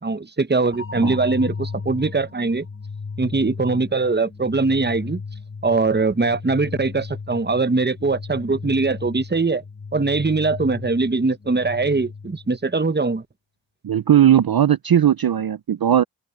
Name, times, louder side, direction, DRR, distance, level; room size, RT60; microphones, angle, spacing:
voice 1, 0.0-2.7 3.2-5.2 5.6-9.6 9.9-13.2, right 3 dB, 25° right, 0.9 m, -21 dB
sound 1, 0.7-12.7, left 4 dB, 25° left, 1.0 m, -35 dB
voice 2, 13.8-16.0, right 10 dB, 55° right, 0.5 m, -17 dB
open air
wide cardioid pair, 55°, 46 cm